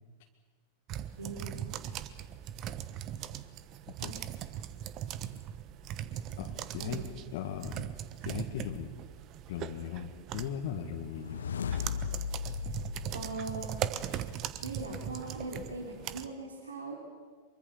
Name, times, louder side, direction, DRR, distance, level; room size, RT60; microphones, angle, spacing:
sound 1, 0.9-16.3, right 11 dB, 35° right, 1.1 m, -40 dB
voice 1, 1.2-1.6 4.0-4.2 6.8-7.0 13.1-13.8 14.6-16.9, right 3 dB, 75° right, 1 dB, 3.1 m, -40 dB
voice 2, 6.4-7.0 7.3-7.9 8.2-8.9 9.5-11.4, left 9 dB, 50° left, 3 dB, 1.8 m, -38 dB
sound 2, 11.0-14.2, left 7 dB, 70° left, 0.7 m, -37 dB
24.5 x 23.5 x 7.1 m, 1.5 s
figure-of-eight pair, 90°, 0 cm